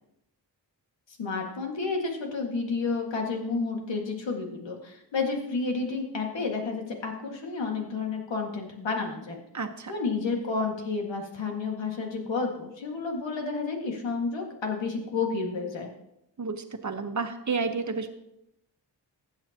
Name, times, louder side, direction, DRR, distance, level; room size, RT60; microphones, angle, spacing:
voice 1, 1.1-9.4 9.9-15.9, left 4 dB, 90° left, 1 dB, 2.0 m, -31 dB
voice 2, 9.5-9.9 16.4-18.1, right 4 dB, 40° right, 6 dB, 1.2 m, -31 dB
15.5 x 8.6 x 2.9 m, 0.82 s
cardioid pair, 75°, 43 cm